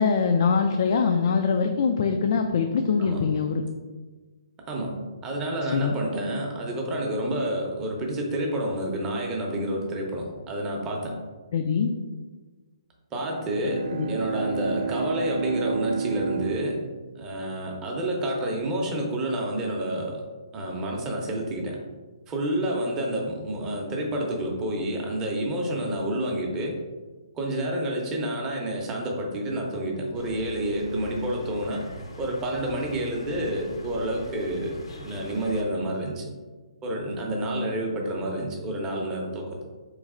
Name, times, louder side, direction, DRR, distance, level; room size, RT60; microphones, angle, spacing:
voice 1, 0.0-3.6 5.6-6.0 11.5-11.9 13.9-14.1, left 5 dB, 50° left, 4 dB, 0.3 m, -23 dB
voice 2, 4.7-11.1 13.1-16.8 17.2-20.2 20.5-21.8 22.3-26.7 27.3-31.8 32.2-36.3 36.8-39.6, right 1 dB, 15° right, -1 dB, 0.7 m, -29 dB
Bowed string instrument, 13.2-17.9, right 6 dB, 55° right, 0.4 m, -31 dB
sound 1, 30.1-35.6, left 1 dB, 80° left, 0.8 m, -42 dB
4.2 x 3.1 x 3.7 m, 1.3 s
hypercardioid pair, 160°, 3 cm